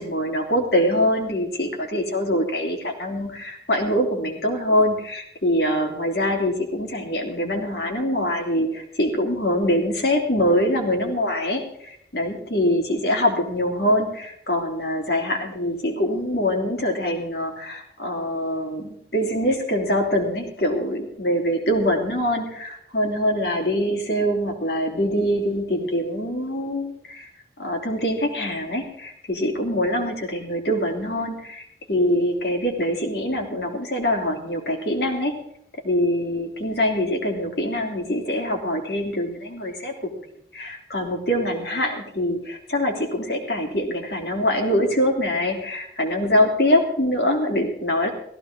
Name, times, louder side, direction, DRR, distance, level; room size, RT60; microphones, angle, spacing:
voice 1, 0.0-27.3 27.6-35.4 35.8-40.3 40.5-48.1, equal, 65° left, 2 dB, 3.0 m, -24 dB
17.0 x 14.5 x 3.8 m, 0.73 s
head